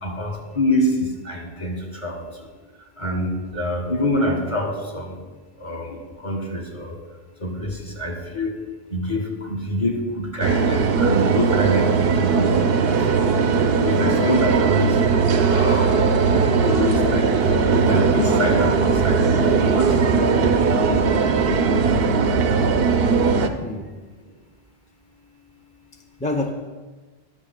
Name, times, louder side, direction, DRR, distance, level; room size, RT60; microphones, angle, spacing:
voice 1, 0.0-0.9 1.3-1.8 2.0-2.1 3.0-5.1 5.6-5.9 6.2-6.9 7.4-8.5 8.9-12.6 13.8-14.9 15.5-15.9 16.6-17.3 17.7-20.1, left 1 dB, 30° left, -1 dB, 1.8 m, -25 dB
sound 1, 10.4-23.5, right 5 dB, 65° right, 0.9 m, -19 dB
voice 2, 22.7-23.9 26.2-26.5, left 2 dB, 10° left, 3 dB, 0.4 m, -30 dB
22.0 x 7.3 x 2.2 m, 1.3 s
omnidirectional pair, 1.1 m